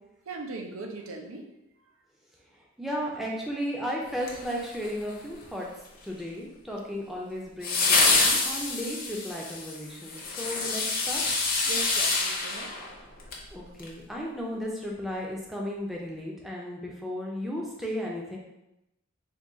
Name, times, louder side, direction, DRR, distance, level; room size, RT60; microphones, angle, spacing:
voice 1, 0.3-1.5 11.6-12.7, right 2 dB, 80° right, 2 dB, 0.5 m, -39 dB
voice 2, 2.8-5.7 6.0-11.2 13.5-18.4, equal, ahead, -3 dB, 0.5 m, -34 dB
sound 1, 4.2-5.1 7.6-13.4 13.8-13.9, left 3 dB, 45° left, 0.7 m, -27 dB
3.7 x 2.3 x 3.7 m, 0.90 s
head